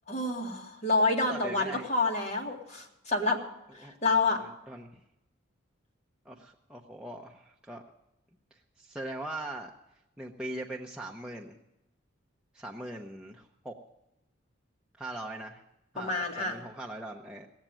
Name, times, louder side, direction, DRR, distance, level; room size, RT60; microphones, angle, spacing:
voice 1, 0.1-3.4 3.7-4.4 16.0-16.6, left 3 dB, 35° left, 0 dB, 2.1 m, -28 dB
voice 2, 1.3-1.9 3.8-3.9 4.3-5.0 6.2-7.8 8.8-9.7 10.2-11.6 12.5-13.8 15.0-15.6 15.9-17.5, right 1 dB, 5° right, -1 dB, 0.8 m, -41 dB
18.5 x 7.3 x 9.0 m, 0.88 s
head